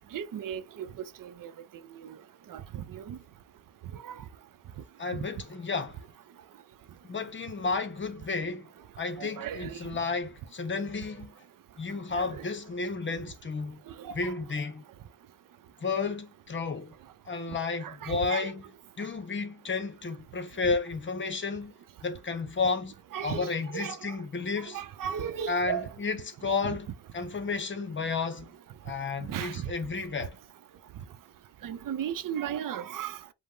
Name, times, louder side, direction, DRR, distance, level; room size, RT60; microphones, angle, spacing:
voice 1, 0.1-0.9 1.2-1.5 2.0-2.2 2.5-3.2 4.0-4.2 9.2-9.8 12.1-12.4 14.0-14.3 17.8-18.5 23.1-24.2 24.7-25.9 26.6-26.8 29.2-29.7 31.6-33.2, right 9 dB, 85° right, 0.6 m, -36 dB
voice 2, 5.0-6.0 7.0-8.7 9.0-11.3 11.8-13.8 14.1-14.8 15.8-16.9 17.3-18.6 19.0-21.8 22.0-22.9 23.2-24.8 25.5-28.5 28.8-30.3, left 4 dB, 35° left, 0.8 m, -32 dB
5.2 x 2.1 x 3.8 m
wide cardioid pair, 165°, 32 cm